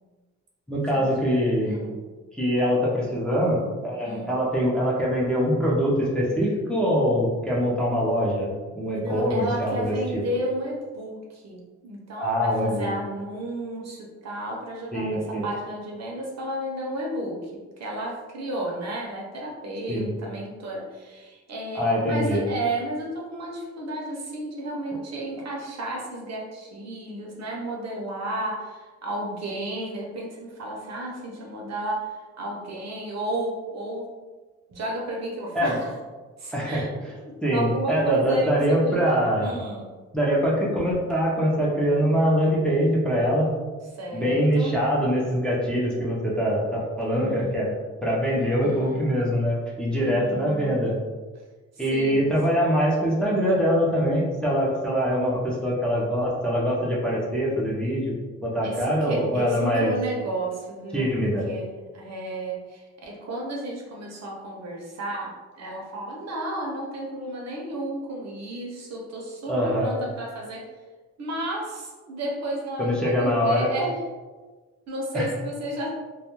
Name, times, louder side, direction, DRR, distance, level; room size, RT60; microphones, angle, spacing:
voice 1, 0.7-1.7 2.3-10.2 12.2-12.9 14.9-15.4 19.9-20.1 21.7-22.4 35.5-35.8 36.5-36.8 37.4-39.5 40.1-43.5 44.1-47.7 48.0-51.0 51.8-58.1 58.4-59.9 60.9-61.5 69.5-69.9 72.8-73.7 75.1-75.3, equal, 5° left, -5 dB, 0.5 m, -23 dB
voice 2, 1.6-2.0 4.0-4.3 8.9-17.5 17.8-34.1 34.7-35.9 36.4-36.9 37.2-39.9 43.9-44.7 47.1-47.5 48.3-49.0 49.9-50.8 51.7-52.3 58.6-61.0 61.5-70.7 71.2-74.0 74.9-75.9, right 1 dB, 65° right, -2 dB, 0.7 m, -32 dB
2.2 x 2.2 x 2.9 m, 1.3 s
wide cardioid pair, 115°, 29 cm